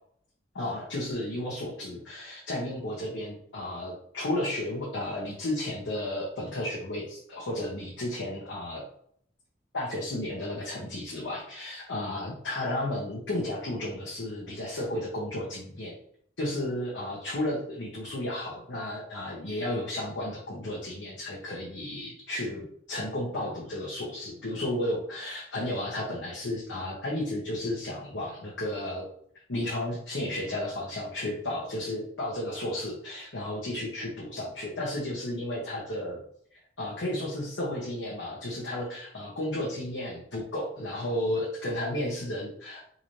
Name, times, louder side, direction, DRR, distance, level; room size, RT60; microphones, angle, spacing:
voice 1, 0.5-8.8 9.7-15.9 16.4-29.1 29.5-36.2 36.8-42.9, left 1 dB, 70° left, -5 dB, 1.0 m, -33 dB
3.8 x 2.7 x 3.1 m, 0.65 s
head